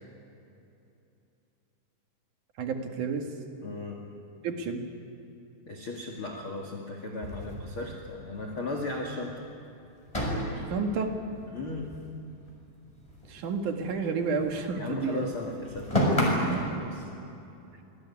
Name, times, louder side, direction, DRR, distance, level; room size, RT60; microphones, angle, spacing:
voice 1, 2.6-3.2 4.4-4.8 10.7-11.1 13.3-15.3, right 4 dB, 55° right, 4 dB, 2.9 m, -30 dB
voice 2, 3.6-4.0 5.7-9.4 11.5-12.0 14.8-17.1, left 2 dB, 40° left, 1 dB, 2.4 m, -36 dB
sound 1, 7.2-8.6 8.9-9.0 9.3-9.4 10.1-12.6 12.8-14.7 14.9-16.7, equal, 5° left, 6.0 m, -31 dB
26.5 x 21.0 x 9.8 m, 2.7 s
omnidirectional pair, 5.1 m